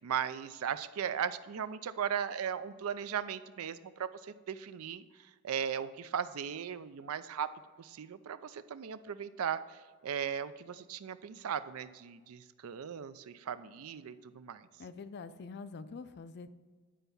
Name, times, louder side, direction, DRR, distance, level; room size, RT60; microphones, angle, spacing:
voice 1, 0.0-5.0 5.4-7.5 7.8-14.7, right 8 dB, 70° right, 13 dB, 0.4 m, -37 dB
voice 2, 14.8-16.5, left 4 dB, 50° left, 13 dB, 0.4 m, -45 dB
10.0 x 4.5 x 5.4 m, 1.4 s
head